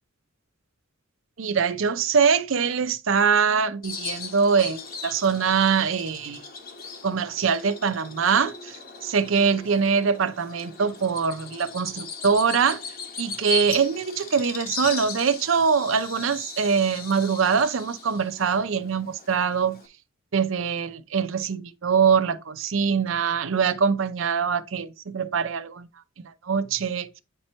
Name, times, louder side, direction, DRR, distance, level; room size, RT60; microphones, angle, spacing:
voice 1, 1.4-6.4 7.0-8.7 9.0-12.8 13.2-19.8 20.3-25.9 26.4-27.2, right 6 dB, 70° right, 0.5 m, -23 dB
Bird vocalization bird call bird song, 3.8-19.9, left 5 dB, 45° left, 1.0 m, -38 dB
8.6 x 2.9 x 4.3 m
head